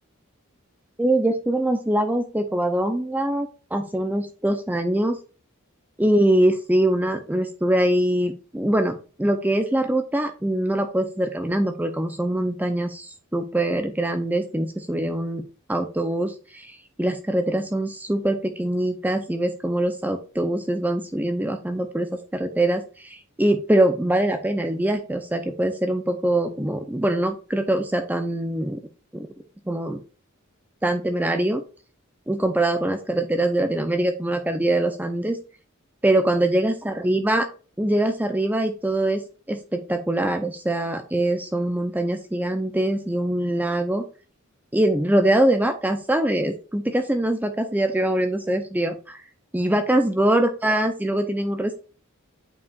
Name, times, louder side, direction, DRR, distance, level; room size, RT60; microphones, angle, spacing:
voice 1, 1.0-5.2 6.0-15.4 15.7-28.8 29.1-29.3 29.7-30.0 30.8-31.6 32.3-35.4 36.0-37.5 37.8-39.2 39.5-44.1 44.7-49.2 49.5-51.8, right 1 dB, 10° right, 6 dB, 0.6 m, -23 dB
8.5 x 4.7 x 2.4 m, 0.36 s
head